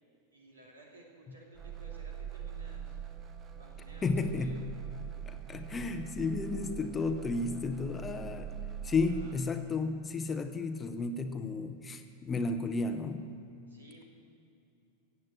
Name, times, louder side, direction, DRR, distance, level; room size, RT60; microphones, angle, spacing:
voice 1, 0.3-3.0 3.5-4.7 9.1-9.4 13.7-14.0, right 2 dB, 75° right, -1 dB, 2.8 m, -56 dB
sound 1, 1.6-9.4, right 9 dB, 25° right, 0.8 m, -43 dB
voice 2, 4.0-4.7 5.3-8.6 8.8-13.3, left 3 dB, 20° left, 8 dB, 0.8 m, -33 dB
15.5 x 8.6 x 7.4 m, 2.7 s
figure-of-eight pair, 90°, 0 cm